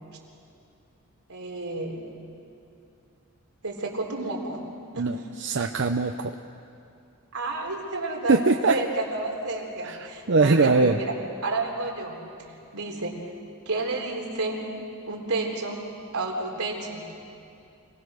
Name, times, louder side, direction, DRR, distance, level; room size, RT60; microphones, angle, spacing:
voice 1, 1.3-2.0 3.6-4.6 4.9-5.2 7.3-11.1 11.4-13.3 13.7-14.7 15.1-15.8 16.1-17.0, right 2 dB, 85° right, -1 dB, 3.6 m, -31 dB
voice 2, 5.0-6.3 8.3-8.8 9.8-10.0 10.3-11.0, right 3 dB, 55° right, 5 dB, 0.6 m, -21 dB
27.0 x 18.5 x 6.5 m, 2.6 s
head